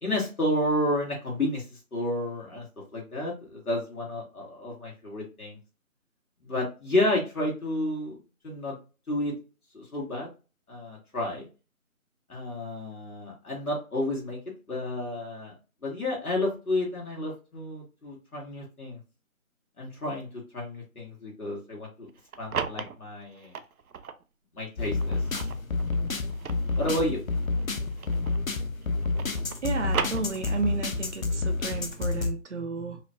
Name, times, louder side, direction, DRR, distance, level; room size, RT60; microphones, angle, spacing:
voice 1, 0.0-2.7 2.9-5.6 6.4-8.2 8.4-8.7 9.1-9.3 9.7-10.3 10.7-11.5 12.3-14.4 14.7-15.6 15.8-19.0 19.8-20.3 20.5-22.1 22.4-23.5 24.5-25.5 26.8-27.2, left 1 dB, 85° left, -3 dB, 2.1 m, -31 dB
sound 1, 22.1-24.2 24.8-28.5 28.8-30.8, right 6 dB, 85° right, 0.6 m, -36 dB
sound 2, 24.8-32.3, left 3 dB, 70° left, 0.8 m, -29 dB
voice 2, 29.6-33.0, right 4 dB, 55° right, 6 dB, 0.8 m, -32 dB
4.9 x 2.3 x 2.9 m, 0.32 s
figure-of-eight pair, 170°, 42 cm